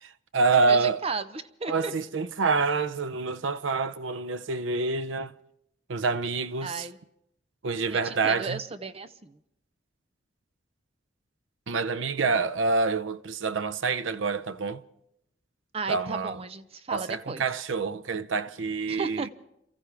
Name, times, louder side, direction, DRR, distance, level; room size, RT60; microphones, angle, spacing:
voice 1, 0.0-1.0 1.7-5.3 5.9-6.9 7.6-8.6 11.7-14.8 15.9-16.4 16.9-19.3, right 4 dB, 85° right, 0.6 m, -27 dB
voice 2, 0.5-1.9 6.6-7.0 7.9-9.4 15.7-17.4 18.9-19.3, right 4 dB, 30° right, 0.7 m, -34 dB
29.0 x 14.5 x 3.4 m
head